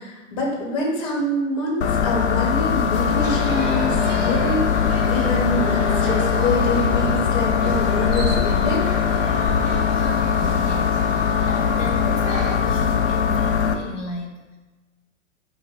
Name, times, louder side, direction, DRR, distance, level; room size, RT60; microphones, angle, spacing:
voice 1, 0.0-8.9, left 1 dB, 35° left, -2 dB, 1.1 m, -26 dB
sound 1, 1.8-13.7, left 7 dB, 65° left, 0.5 m, -21 dB
sound 2, 3.0-12.6, right 3 dB, 25° right, 0.6 m, -32 dB
voice 2, 9.9-14.6, left 1 dB, 80° left, 0 dB, 1.0 m, -34 dB
4.3 x 2.1 x 4.4 m, 1.2 s
figure-of-eight pair, 100°, 37 cm